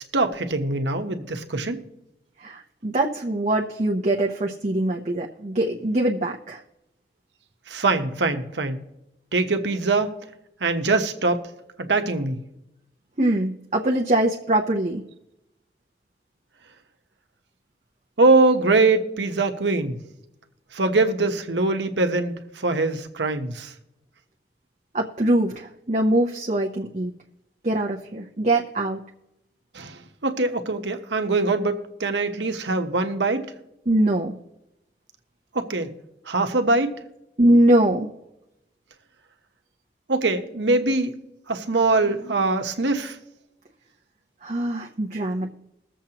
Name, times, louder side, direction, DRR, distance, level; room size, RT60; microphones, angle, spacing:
voice 1, 0.0-1.8 7.7-8.8 9.3-10.1 10.6-11.4 11.8-12.4 18.2-20.0 20.7-23.7 29.7-33.5 35.5-35.9 36.3-36.9 40.1-41.1 41.5-43.2, right 3 dB, 85° right, 6 dB, 1.1 m, -23 dB
voice 2, 2.4-6.6 13.2-15.0 24.9-27.1 27.6-29.0 33.9-34.3 37.4-38.1 44.4-45.5, right 1 dB, 40° right, -1 dB, 0.8 m, -22 dB
21.5 x 7.3 x 2.9 m, 0.88 s
head